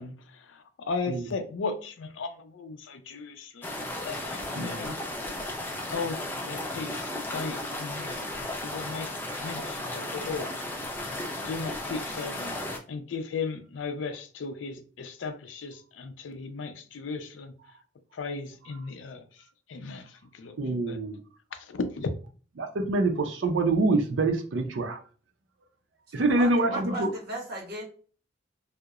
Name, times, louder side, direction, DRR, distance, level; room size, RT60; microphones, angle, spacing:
voice 1, 0.0-3.7 4.0-4.9 5.9-6.2 6.5-8.2 8.6-9.1 9.4-10.5 11.4-12.6 12.9-17.5 18.1-19.2 19.7-20.5 20.9-21.0 21.5-22.1, left 4 dB, 80° left, 8 dB, 0.4 m, -36 dB
sound 1, 3.6-12.8, left 1 dB, 10° left, 0.3 m, -35 dB
voice 2, 20.6-21.2 22.6-25.0 26.1-27.1, right 2 dB, 75° right, 4 dB, 0.4 m, -25 dB
voice 3, 26.1-27.8, right 1 dB, 55° right, 0 dB, 0.9 m, -36 dB
2.8 x 2.0 x 2.3 m, 0.39 s
head